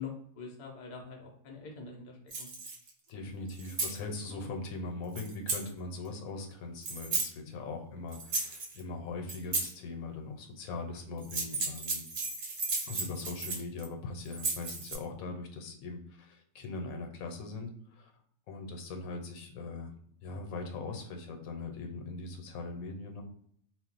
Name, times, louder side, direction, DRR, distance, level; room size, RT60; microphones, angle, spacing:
voice 1, 0.0-2.5, left 5 dB, 45° left, 0 dB, 0.5 m, -44 dB
sound 1, 2.3-2.9 3.5-4.0 5.2-5.7 6.8-7.3 8.1-8.8 9.3-9.7 11.2-13.8 14.3-14.9, right 3 dB, 60° right, 0.9 m, -34 dB
voice 2, 3.1-12.0 12.9-18.1 18.5-19.9 20.2-23.2, left 3 dB, 80° left, 4 dB, 1.0 m, -40 dB
2.4 x 2.0 x 3.8 m, 0.66 s
omnidirectional pair, 1.5 m